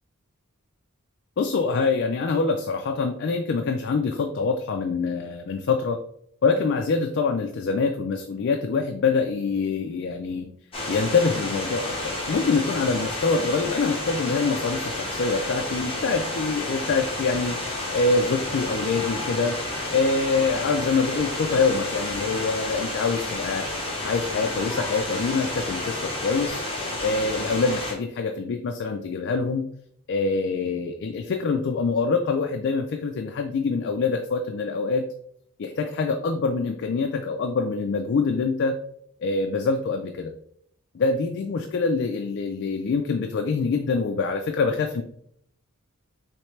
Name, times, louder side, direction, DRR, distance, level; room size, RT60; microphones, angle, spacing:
voice 1, 1.4-6.0 6.4-10.5 10.9-17.6 17.9-19.6 19.9-23.7 24.0-26.6 27.0-29.7 30.1-35.0 35.6-38.8 39.2-40.3 40.9-45.0, left 4 dB, 55° left, 4 dB, 0.3 m, -25 dB
sound 1, 10.7-27.9, left 2 dB, 25° left, 1.2 m, -31 dB
4.5 x 3.2 x 3.1 m, 0.68 s
head